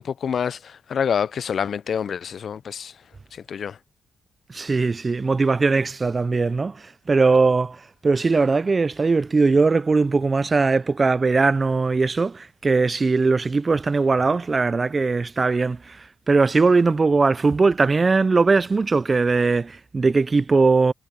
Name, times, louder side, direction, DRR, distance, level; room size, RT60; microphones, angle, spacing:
voice 1, 0.0-2.9 3.3-3.8, left 7 dB, 60° left, 0.3 m, -27 dB
voice 2, 4.5-6.8 7.1-20.9, right 4 dB, 30° right, 0.3 m, -20 dB
cardioid pair, 95°, 0 cm